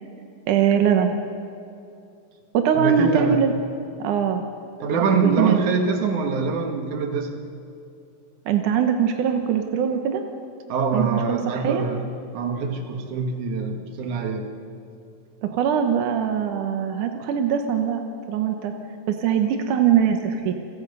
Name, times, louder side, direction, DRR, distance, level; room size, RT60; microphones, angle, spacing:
voice 1, 0.5-1.1 2.5-3.5 4.0-4.4 5.1-5.6 8.5-10.2 10.9-11.9 15.4-18.0 18.3-18.7 19.1-20.5, right 8 dB, 75° right, 5 dB, 1.8 m, -22 dB
voice 2, 2.7-3.4 4.8-7.3 10.7-12.1 12.3-14.5, right 4 dB, 55° right, 4 dB, 2.5 m, -24 dB
29.5 x 23.0 x 5.5 m, 2.5 s
omnidirectional pair, 5.2 m